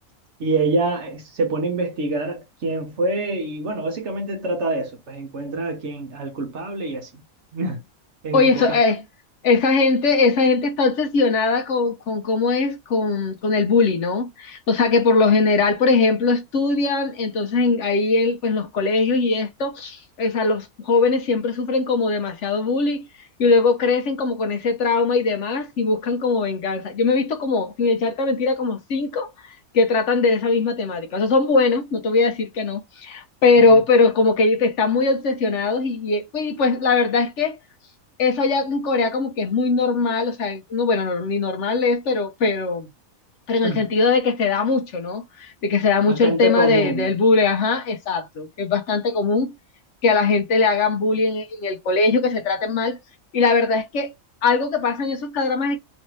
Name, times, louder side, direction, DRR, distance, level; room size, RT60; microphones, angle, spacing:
voice 1, 0.4-7.2 7.5-7.8 8.2-8.8 33.7-33.8 43.6-43.8 46.1-47.1, right 2 dB, 60° right, 1.1 m, -25 dB
voice 2, 8.3-9.0 9.4-23.0 23.4-37.6 38.2-42.9 43.5-49.5 50.0-53.0 53.3-54.1 54.4-55.8, left 3 dB, 65° left, 0.9 m, -20 dB
3.1 x 2.6 x 3.0 m
omnidirectional pair, 1.5 m